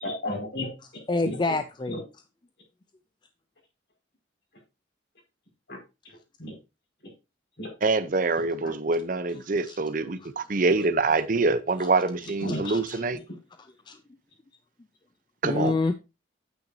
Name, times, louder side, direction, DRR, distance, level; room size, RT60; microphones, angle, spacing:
voice 1, 0.0-1.4 1.9-2.0 5.7-5.8 6.4-6.5 7.6-7.7 8.6-8.7 12.4-12.7, left 1 dB, 65° left, 5.1 m, -33 dB
voice 2, 1.1-2.0 9.7-9.8 10.2-10.3 11.8-11.9 12.5-13.0 13.9-14.0 15.4-16.0, left 3 dB, 25° left, 0.4 m, -28 dB
voice 3, 7.8-13.2 15.4-15.7, right 3 dB, 45° right, 0.6 m, -25 dB
9.0 x 8.8 x 2.7 m
head